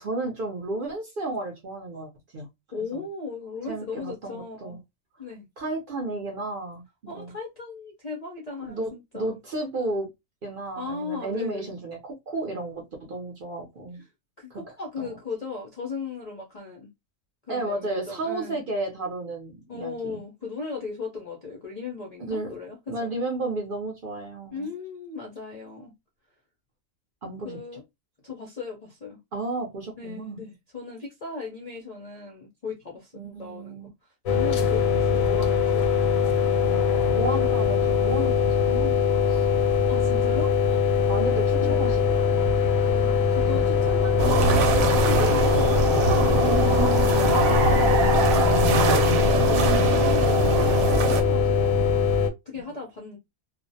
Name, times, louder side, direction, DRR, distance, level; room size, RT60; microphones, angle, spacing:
voice 1, 0.0-2.5 2.9-3.0 3.6-4.8 5.6-7.3 8.7-10.1 10.4-14.0 14.5-14.6 15.0-15.2 17.5-20.2 22.2-22.6 22.9-24.7 27.2-27.6 29.3-30.4 33.1-33.9 37.1-39.7 41.0-42.5, right 2 dB, 55° right, 0.7 m, -33 dB
voice 2, 2.7-4.8 5.2-5.5 7.1-9.4 10.8-11.7 14.4-16.9 17.5-18.6 19.7-23.1 24.5-25.9 27.4-27.8 28.2-29.2 30.0-33.9 34.3-35.9 39.9-40.9 41.6-41.9 42.9-46.7 47.3-51.8 52.5-53.2, left 4 dB, 50° left, 0.4 m, -37 dB
sound 1, 34.3-52.3, left 6 dB, 85° left, 1.1 m, -22 dB
sound 2, 44.2-51.2, right 4 dB, 85° right, 1.0 m, -23 dB
2.4 x 2.0 x 2.6 m
omnidirectional pair, 1.4 m